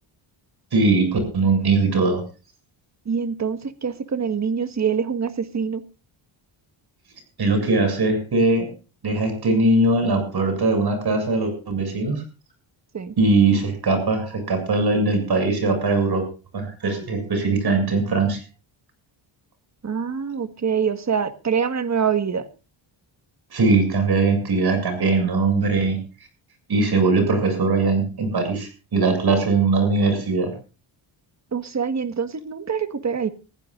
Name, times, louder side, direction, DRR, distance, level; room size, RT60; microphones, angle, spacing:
voice 1, 0.7-2.2 7.4-8.7 9.0-12.2 13.2-16.2 16.5-18.4 23.5-26.0 26.7-30.5, right 3 dB, 50° right, 6 dB, 7.2 m, -20 dB
voice 2, 3.0-5.8 12.9-13.1 19.8-22.5 31.5-33.3, right 6 dB, 35° right, 11 dB, 1.6 m, -25 dB
22.5 x 15.5 x 2.5 m, 0.33 s
cardioid pair, 110°, 48 cm